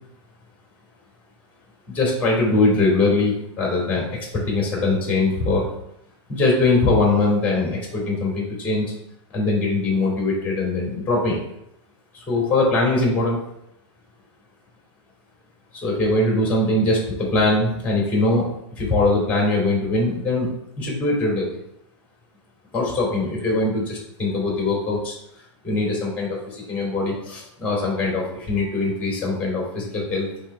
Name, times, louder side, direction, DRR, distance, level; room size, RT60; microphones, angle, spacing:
voice 1, 1.9-5.7 6.3-8.9 9.3-11.4 12.3-13.4 15.8-18.5 18.7-20.5 20.8-21.5 22.7-25.1 25.6-30.3, left 2 dB, 10° left, -3 dB, 2.4 m, -21 dB
5.8 x 3.4 x 5.3 m, 0.77 s
hypercardioid pair, 135°, 15 cm